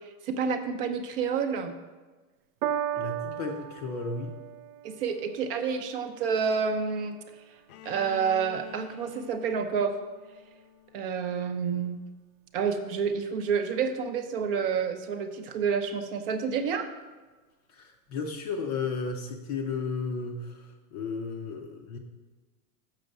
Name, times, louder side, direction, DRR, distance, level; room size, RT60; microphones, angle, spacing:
voice 1, 0.0-1.7 4.8-7.2 7.8-9.9 10.9-12.0 12.5-16.9, right 6 dB, 40° right, 8 dB, 0.7 m, -29 dB
Piano, 2.6-9.2 10.0-10.1, right 10 dB, 75° right, 0.6 m, -38 dB
voice 2, 2.9-4.3 17.7-22.0, left 4 dB, 30° left, 4 dB, 0.5 m, -34 dB
Bowed string instrument, 7.7-11.5, left 13 dB, 90° left, 0.8 m, -48 dB
6.7 x 6.1 x 7.5 m, 1.3 s
supercardioid pair, 180°, 43 cm